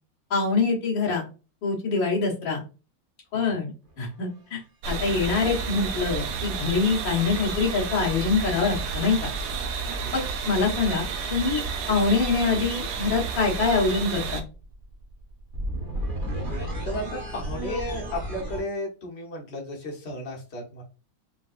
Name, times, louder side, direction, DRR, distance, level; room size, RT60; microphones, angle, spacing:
voice 1, 0.3-1.2 1.6-2.6 3.3-3.7 4.0-4.6 4.9-9.3 10.1-14.4, left 4 dB, 60° left, -2 dB, 2.1 m, -25 dB
sound 1, 3.9-4.1 5.4-7.5 9.3-18.6, right 1 dB, 25° right, 1.4 m, -36 dB
sound 2, 4.8-14.4, right 5 dB, 70° right, 0.9 m, -31 dB
voice 2, 16.8-20.8, left 1 dB, 35° left, -1 dB, 1.3 m, -34 dB
5.3 x 3.3 x 2.5 m, 0.33 s
omnidirectional pair, 2.3 m